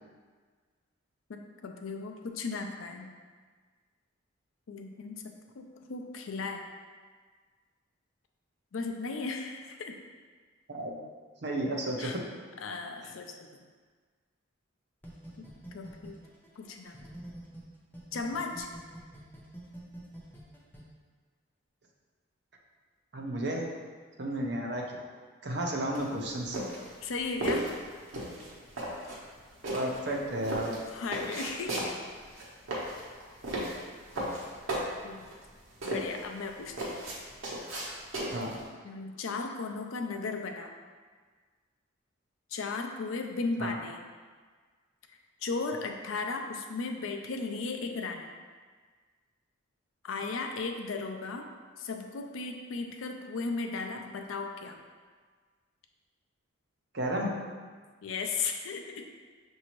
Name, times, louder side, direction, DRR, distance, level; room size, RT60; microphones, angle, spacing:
voice 1, 1.3-3.1 4.7-6.6 8.7-10.0 12.0-12.2 12.6-13.6 15.4-16.2 16.6-17.3 18.1-18.7 27.0-27.7 30.9-32.0 35.0-35.3 35.8-37.0 38.8-40.7 42.5-44.0 45.1-48.3 50.0-51.5 51.8-54.8 58.0-59.0, left 4 dB, 80° left, 4 dB, 0.4 m, -36 dB
voice 2, 11.4-12.2 23.1-23.6 24.2-24.8 25.4-26.6 29.7-30.7 38.3-38.6 43.6-43.7 56.9-57.3, right 1 dB, 55° right, -1 dB, 0.6 m, -32 dB
sound 1, 15.0-17.6 17.9-20.8, right 1 dB, 10° left, 0.5 m, -46 dB
sound 2, 26.0-38.6, right 1 dB, 90° right, 1.0 m, -36 dB
5.9 x 2.7 x 3.0 m, 1.5 s
head